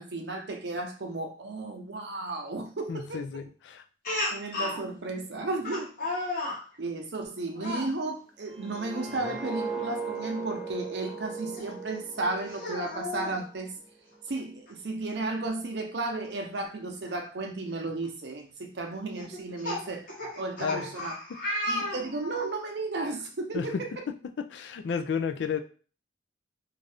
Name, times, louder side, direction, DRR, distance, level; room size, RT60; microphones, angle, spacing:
voice 1, 0.0-3.2 4.3-6.2 6.8-13.7 14.3-20.1 20.4-21.1 21.6-23.7, right 2 dB, 65° right, 4 dB, 0.6 m, -34 dB
voice 2, 2.9-3.8 20.6-20.9 21.3-21.4 23.5-23.8 24.4-25.6, left 6 dB, 70° left, 6 dB, 0.4 m, -32 dB
Speech, 4.0-4.8 5.6-6.6 7.5-7.9 9.1-9.4 9.8-9.9 11.6-11.7 12.5-13.3 14.7-14.8 15.1-15.2 17.1-17.2 17.8-18.0 19.1-22.5, left 1 dB, 50° left, 1.1 m, -33 dB
sound 1, 8.5-13.5 13.9-14.2, right 4 dB, ahead, 1.0 m, -38 dB
2.7 x 2.4 x 3.3 m, 0.38 s
head